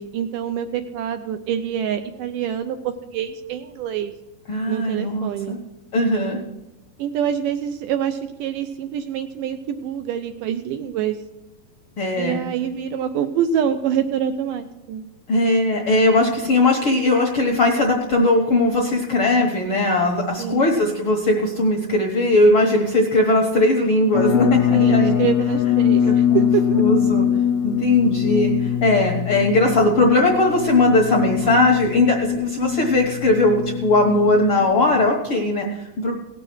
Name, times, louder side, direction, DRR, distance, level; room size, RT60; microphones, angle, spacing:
voice 1, 0.0-4.1 4.7-5.6 7.0-11.2 12.2-15.1 20.4-20.7 24.7-26.8, right 9 dB, 80° right, 8 dB, 2.0 m, -26 dB
voice 2, 4.5-5.6 5.9-6.4 12.0-12.4 15.3-25.1 26.0-27.3 27.6-36.1, left 2 dB, 60° left, 1 dB, 1.5 m, -19 dB
sound 1, 24.1-35.1, left 9 dB, 80° left, 1.7 m, -22 dB
17.5 x 6.9 x 6.1 m, 1.0 s
omnidirectional pair, 4.2 m